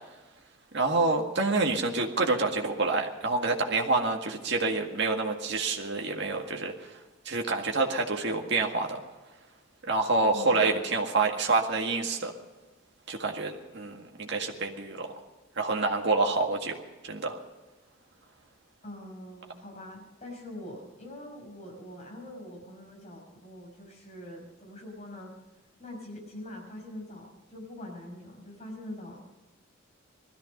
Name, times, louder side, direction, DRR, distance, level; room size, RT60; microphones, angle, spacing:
voice 1, 0.7-7.0 7.3-9.0 9.8-12.3 13.1-15.1 15.6-17.4, right 3 dB, 60° right, 1 dB, 1.9 m, -27 dB
voice 2, 18.8-25.3 25.8-29.2, left 1 dB, 35° left, 0 dB, 5.5 m, -44 dB
19.5 x 14.0 x 5.3 m, 1.2 s
head